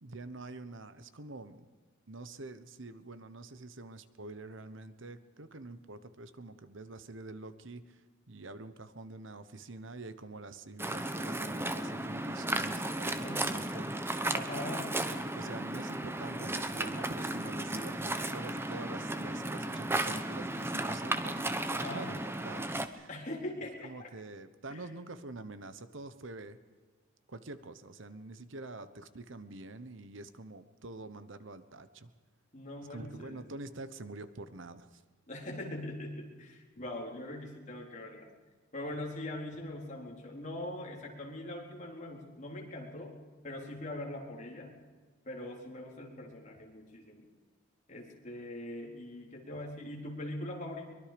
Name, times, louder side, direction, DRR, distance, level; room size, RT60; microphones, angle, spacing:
voice 1, 0.0-1.7 2.1-14.1 15.3-21.4 21.9-23.1 23.8-26.6 27.3-32.1 32.9-35.0, right 2 dB, 65° right, 12 dB, 1.1 m, -46 dB
Waves surf, 10.8-22.9, right 1 dB, 10° right, 1.0 m, -35 dB
voice 2, 13.2-13.9 14.3-15.0 21.7-22.1 23.1-24.1 24.7-24.9 32.5-33.4 35.3-38.3 38.7-43.2 43.4-44.7 45.2-47.3 47.9-50.9, left 1 dB, 35° left, -1 dB, 4.1 m, -42 dB
23.5 x 22.5 x 5.2 m, 1.4 s
head